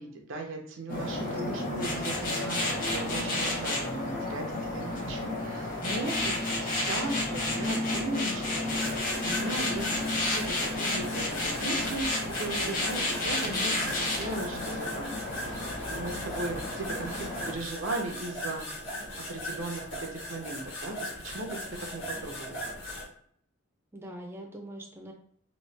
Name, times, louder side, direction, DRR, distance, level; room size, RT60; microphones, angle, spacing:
voice 1, 0.0-15.1 15.9-18.6 19.3-21.6 21.9-22.6, right 2 dB, 90° right, 2 dB, 0.7 m, -37 dB
sound 1, 0.9-17.5, left 2 dB, 45° left, 0.9 m, -31 dB
voice 2, 1.1-1.6 23.9-25.1, right 1 dB, 10° right, 1 dB, 0.4 m, -43 dB
sound 2, 8.7-23.0, equal, 75° left, 1.3 m, -39 dB
3.1 x 2.8 x 3.2 m, 0.62 s
head